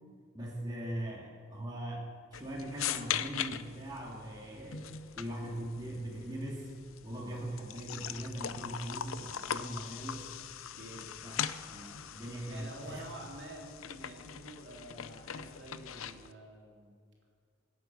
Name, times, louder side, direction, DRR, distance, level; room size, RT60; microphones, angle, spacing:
voice 1, 0.3-6.7 7.0-10.3 11.2-11.4 11.7-13.0, right 1 dB, 20° right, -4 dB, 2.6 m, -41 dB
sound 1, 2.3-16.3, left 9 dB, 90° left, 0.6 m, -41 dB
voice 2, 10.7-11.1 12.5-16.9, right 1 dB, 55° right, -2 dB, 3.1 m, -48 dB
25.5 x 8.6 x 6.1 m, 2.1 s
head